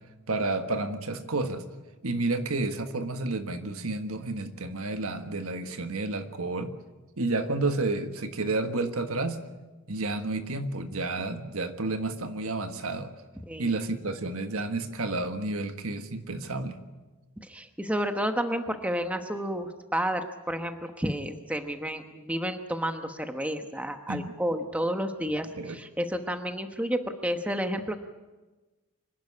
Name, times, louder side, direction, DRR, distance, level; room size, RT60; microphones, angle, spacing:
voice 1, 0.3-1.6 2.0-6.8 7.2-9.4 9.9-13.1 13.6-16.8 24.1-24.3 25.6-25.8, right 2 dB, 70° right, 8 dB, 1.5 m, -30 dB
voice 2, 17.4-28.0, equal, 5° right, 6 dB, 1.0 m, -31 dB
25.0 x 11.5 x 9.8 m, 1.2 s
head